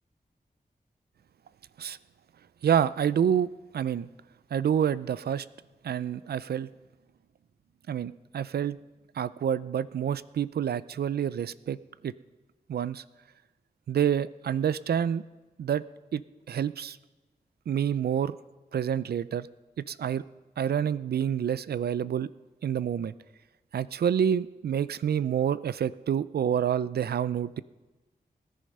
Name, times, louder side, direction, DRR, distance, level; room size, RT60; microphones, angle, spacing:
voice 1, 2.6-3.5 3.7-4.1 4.5-5.5 5.8-6.7 7.9-8.8 9.2-11.8 12.0-12.1 12.7-13.0 13.9-15.2 15.6-15.8 16.1-16.2 16.5-17.0 17.7-18.4 18.7-19.5 19.9-20.2 20.6-22.3 22.6-23.1 23.7-27.6, right 9 dB, 85° right, 17 dB, 0.4 m, -28 dB
19.0 x 10.0 x 5.4 m, 1.2 s
wide cardioid pair, 70°, 16 cm